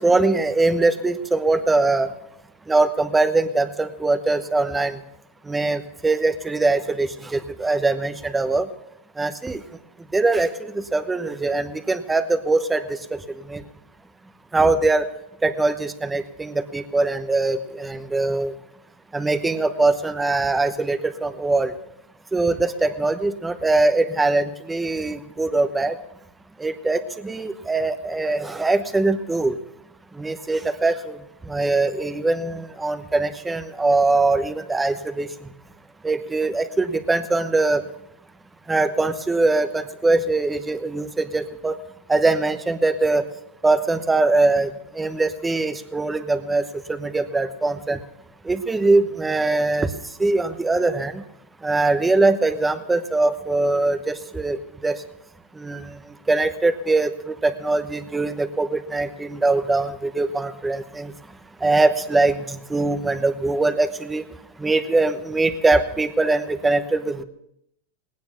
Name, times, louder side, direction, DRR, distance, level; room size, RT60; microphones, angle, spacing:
voice 1, 0.0-2.1 2.7-5.0 5.5-8.7 9.2-9.6 10.1-10.5 10.9-12.8 13.5-13.6 14.5-15.1 15.4-18.5 19.1-21.7 22.3-25.9 26.6-29.5 30.2-31.2 31.5-35.3 36.0-37.8 38.7-41.7 42.1-43.2 43.6-44.7 45.0-46.6 46.9-48.0 48.5-49.9 50.2-51.2 51.6-54.6 54.8-54.9 55.6-55.9 56.3-61.1 61.6-64.2 64.6-67.2, right 3 dB, 10° right, 9 dB, 1.0 m, -22 dB
19.0 x 9.5 x 5.9 m, 0.77 s
supercardioid pair, 140°, 0 cm